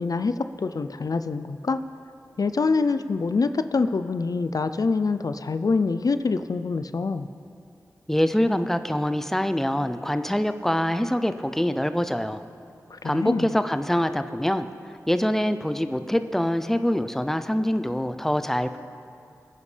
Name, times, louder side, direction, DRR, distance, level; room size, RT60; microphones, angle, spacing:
voice 1, 0.0-1.8 2.4-7.3 12.9-13.5, left 4 dB, 65° left, 11 dB, 0.4 m, -25 dB
voice 2, 8.1-12.4 13.0-14.7 15.1-18.8, equal, 5° left, 10 dB, 0.6 m, -24 dB
21.0 x 9.6 x 3.3 m, 2.6 s
cardioid pair, 45°, 7 cm